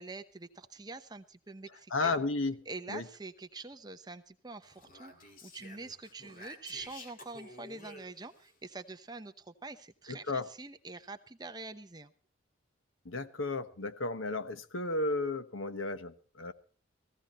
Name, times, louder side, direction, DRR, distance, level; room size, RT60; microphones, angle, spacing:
voice 1, 0.0-2.1 2.7-12.1, right 3 dB, 20° right, 8 dB, 0.8 m, -45 dB
voice 2, 1.9-3.1 10.1-10.5 13.0-16.5, left 3 dB, 85° left, 11 dB, 1.2 m, -34 dB
Speech, 4.6-8.5, left 2 dB, 45° left, 2.3 m, -51 dB
16.5 x 15.0 x 4.3 m, 0.40 s
head